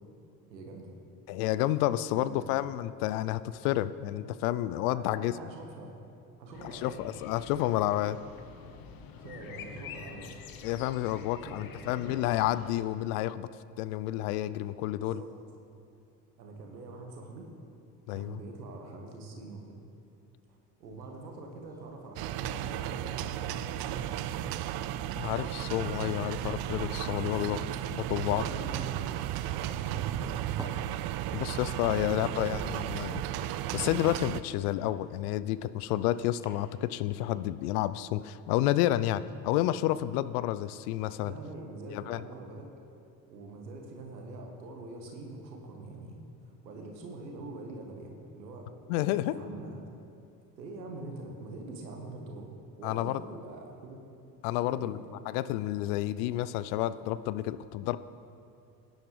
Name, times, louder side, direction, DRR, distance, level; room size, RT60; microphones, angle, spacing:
voice 1, 0.5-0.9 2.1-2.6 4.9-5.9 6.4-7.2 7.5-7.9 9.2-10.4 11.4-12.4 15.0-15.3 16.4-17.5 18.1-19.8 20.5-24.5 27.4-27.5 28.1-29.1 29.4-30.2 31.2-31.5 31.9-32.5 41.2-42.7 43.3-46.2 46.4-48.7 49.3-49.8 50.4-54.0 54.6-55.1, right 2 dB, 85° right, 2 dB, 1.6 m, -44 dB
voice 2, 1.3-5.3 6.6-8.2 10.6-13.5 13.8-15.2 18.1-18.4 25.2-28.4 31.3-33.2 33.7-41.3 41.9-42.2 48.9-49.4 52.8-53.2 54.4-55.0 55.3-58.0, left 14 dB, 60° left, 15 dB, 0.6 m, -30 dB
sound 1, 6.5-12.8, left 7 dB, 45° left, 1.0 m, -47 dB
sound 2, 20.8-22.0 22.3-36.0 36.4-36.5, right 1 dB, 5° right, 1.1 m, -49 dB
sound 3, 22.2-34.4, right 13 dB, 50° right, 0.5 m, -34 dB
17.5 x 10.5 x 3.3 m, 2.6 s
hypercardioid pair, 65°, 50 cm